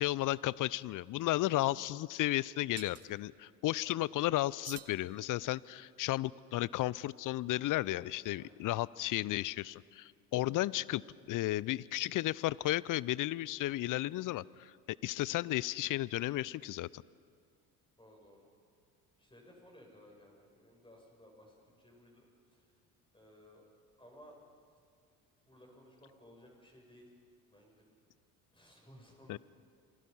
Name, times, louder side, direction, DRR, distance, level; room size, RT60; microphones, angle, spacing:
voice 1, 0.0-17.0 29.3-29.4, left 16 dB, 45° left, 22 dB, 0.6 m, -34 dB
sound 1, 2.8-3.1 4.6-5.7, right 8 dB, 35° right, 1.2 m, -51 dB
voice 2, 18.0-18.5 19.2-22.7 23.1-23.7 24.0-24.4 25.0-25.2 25.4-27.0 27.5-27.9 28.5-29.4, equal, 10° left, 0 dB, 7.6 m, -59 dB
28.0 x 20.5 x 5.7 m, 2.2 s
hypercardioid pair, 60°, 46 cm